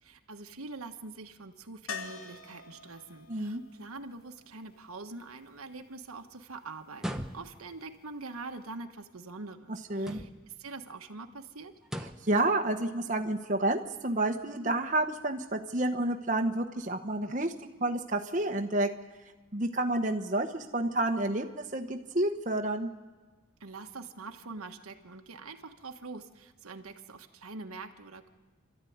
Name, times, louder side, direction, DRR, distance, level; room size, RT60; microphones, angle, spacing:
voice 1, 0.0-11.7 23.6-28.3, right 3 dB, 90° right, 5 dB, 1.4 m, -44 dB
sound 1, 1.9-5.8 8.4-8.5 8.8-8.9, left 5 dB, 75° left, 1.4 m, -46 dB
voice 2, 3.3-3.6 9.9-10.2 12.2-17.5 17.8-18.9 19.5-22.9, right 2 dB, 35° right, 3 dB, 1.1 m, -29 dB
sound 2, 6.9-7.8 10.0-10.6 11.8-12.4, equal, ahead, 0.8 m, -39 dB
28.0 x 13.0 x 9.4 m, 1.3 s
head